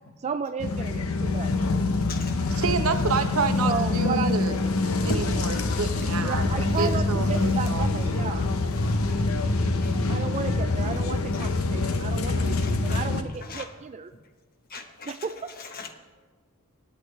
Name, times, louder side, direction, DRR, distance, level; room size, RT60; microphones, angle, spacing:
voice 1, 0.2-1.5 3.6-4.4 6.2-8.5 10.1-14.1 15.1-15.5, right 5 dB, 30° right, 10 dB, 0.4 m, -33 dB
sound 1, 0.6-13.2, left 3 dB, 75° left, 0.8 m, -25 dB
voice 2, 2.5-4.5 5.0-7.9, right 5 dB, 70° right, 7 dB, 0.9 m, -29 dB
voice 3, 14.7-15.1 15.8-15.9, left 2 dB, 45° left, 6 dB, 1.1 m, -33 dB
22.5 x 8.7 x 3.3 m, 1.4 s
head